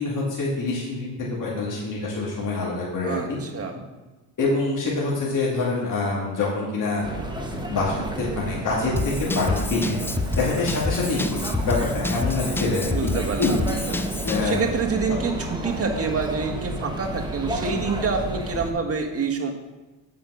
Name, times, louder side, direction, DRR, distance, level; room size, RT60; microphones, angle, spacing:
voice 1, 0.0-3.2 4.4-7.1 7.5-10.0 10.4-13.1 13.4-13.5 14.2-14.7, left 3 dB, 45° left, -6 dB, 2.5 m, -26 dB
voice 2, 3.0-3.8 12.9-13.6 13.9-14.0 14.4-19.5, right 4 dB, 30° right, 2 dB, 1.5 m, -27 dB
sound 1, 7.0-18.7, right 1 dB, 10° right, 1.3 m, -32 dB
Drum kit / Drum, 9.0-14.5, left 2 dB, 5° left, 0.3 m, -28 dB
7.7 x 5.4 x 5.8 m, 1.1 s
supercardioid pair, 80°, 45 cm